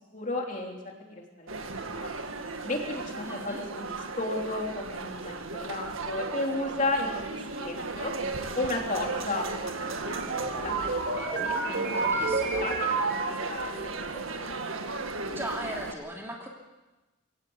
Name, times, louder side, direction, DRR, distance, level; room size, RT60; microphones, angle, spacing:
voice 1, 0.1-2.1 2.6-3.9 4.2-8.1 8.5-11.0 11.3-14.5, left 2 dB, 40° left, 1 dB, 3.2 m, -34 dB
sound 1, 1.5-15.9, right 3 dB, 85° right, 1.8 m, -36 dB
voice 2, 3.2-3.6 12.0-12.7 15.3-16.5, right 1 dB, 10° right, 0 dB, 2.8 m, -38 dB
sound 2, 9.8-14.0, right 3 dB, 55° right, 3.9 m, -30 dB
23.5 x 17.0 x 8.0 m, 1.1 s
head